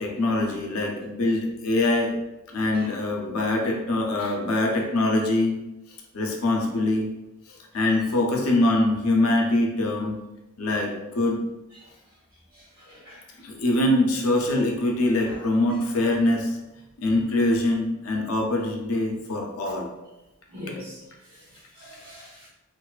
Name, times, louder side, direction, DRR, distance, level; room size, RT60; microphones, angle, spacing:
voice 1, 0.0-2.1 2.5-5.6 6.1-7.1 7.5-10.2 10.6-11.4 13.4-16.6 17.0-19.9, left 2 dB, 80° left, 1 dB, 0.5 m, -23 dB
voice 2, 12.9-13.2 15.2-15.4 20.5-21.0 21.8-22.5, left 1 dB, 70° right, -9 dB, 0.8 m, -41 dB
2.5 x 2.2 x 2.3 m, 0.97 s
head